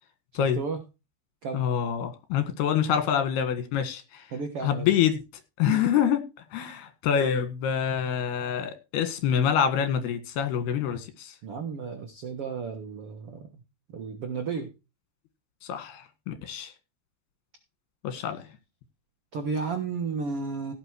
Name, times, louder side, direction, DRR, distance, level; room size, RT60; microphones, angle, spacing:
voice 1, 0.3-0.8 1.4-1.7 4.3-4.9 5.7-5.9 11.4-13.5 13.9-14.7 19.3-20.7, right 5 dB, 90° right, 1.2 m, -33 dB
voice 2, 1.5-4.3 4.6-5.2 5.6-6.2 6.5-11.4 15.6-16.7 18.0-18.5, left 8 dB, 70° left, 3.7 m, -26 dB
16.5 x 6.0 x 4.7 m
omnidirectional pair, 4.9 m